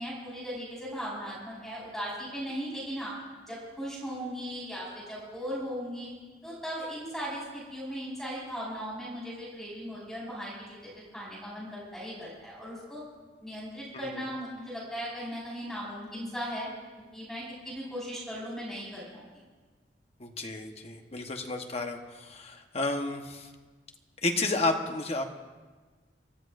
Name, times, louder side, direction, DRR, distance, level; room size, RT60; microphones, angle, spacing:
voice 1, 0.0-3.1 3.5-6.1 6.4-13.0 13.4-16.7 17.1-19.2, equal, ahead, -7 dB, 5.0 m, -38 dB
voice 2, 20.2-23.5 24.2-25.2, left 2 dB, 35° left, 4 dB, 1.2 m, -31 dB
29.0 x 13.5 x 2.6 m, 1.4 s
head